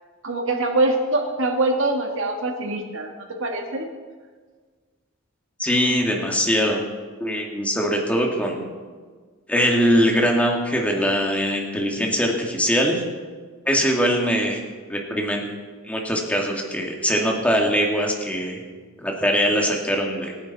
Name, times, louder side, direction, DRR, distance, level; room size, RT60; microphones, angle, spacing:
voice 1, 0.2-3.9, right 2 dB, 65° right, 2 dB, 2.2 m, -24 dB
voice 2, 5.6-6.9 7.2-8.7 9.5-13.0 13.7-14.6 14.9-15.6 15.8-18.6 19.0-20.3, equal, 5° left, 0 dB, 2.2 m, -22 dB
24.5 x 10.0 x 4.2 m, 1.5 s
head